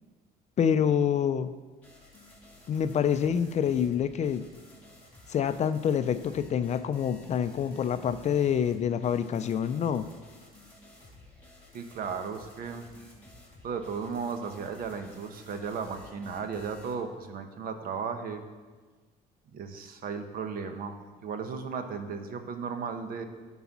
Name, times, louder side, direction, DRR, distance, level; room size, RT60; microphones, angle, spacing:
voice 1, 0.6-1.5 2.7-4.4 5.3-10.1, left 8 dB, 40° left, 11 dB, 0.4 m, -27 dB
sound 1, 1.8-16.9, left 2 dB, 10° left, 2.5 m, -54 dB
voice 2, 11.7-12.9 13.6-18.4 19.5-20.9 21.2-23.3, right 5 dB, 60° right, 7 dB, 0.9 m, -35 dB
11.0 x 4.1 x 6.0 m, 1.3 s
cardioid pair, 110°, 17 cm